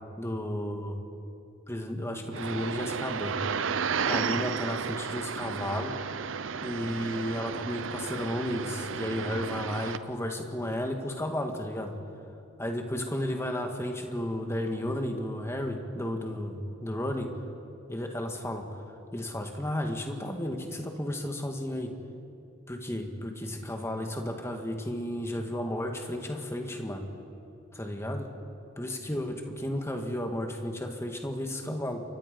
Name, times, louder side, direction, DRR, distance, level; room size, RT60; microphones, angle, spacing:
voice 1, 0.2-1.0 1.7-3.4 4.0-6.0 6.6-11.9 12.6-17.3 17.9-18.7 19.1-22.0 22.7-27.1 27.7-28.3 28.8-32.0, left 1 dB, 15° left, 3 dB, 1.9 m, -33 dB
sound 1, 2.3-10.0, right 6 dB, 70° right, 0.6 m, -33 dB
29.0 x 24.0 x 5.4 m, 2.6 s
head